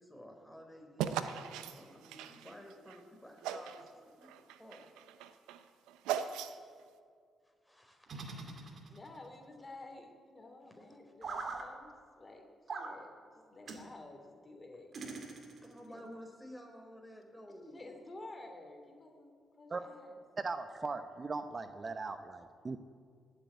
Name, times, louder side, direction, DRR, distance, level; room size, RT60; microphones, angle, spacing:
voice 1, 0.0-4.3 4.6-4.9 7.4-8.3 8.6-8.7 15.6-18.1 19.8-19.9, equal, 5° left, 2 dB, 4.4 m, -53 dB
sound 1, 1.0-3.0 3.4-3.9 4.2-6.8, right 9 dB, 90° right, 0.7 m, -39 dB
sound 2, 8.1-9.3 11.2-11.7 12.7-12.9 13.7-13.9 14.9-15.8, right 4 dB, 60° right, 2.3 m, -42 dB
voice 2, 8.9-12.5 12.8-15.3 15.9-16.1 17.7-20.2, left 2 dB, 35° left, 3 dB, 3.2 m, -52 dB
voice 3, 20.4-22.8, right 4 dB, 40° right, 9 dB, 0.9 m, -39 dB
18.5 x 8.2 x 9.4 m, 2.1 s
supercardioid pair, 55°, 0 cm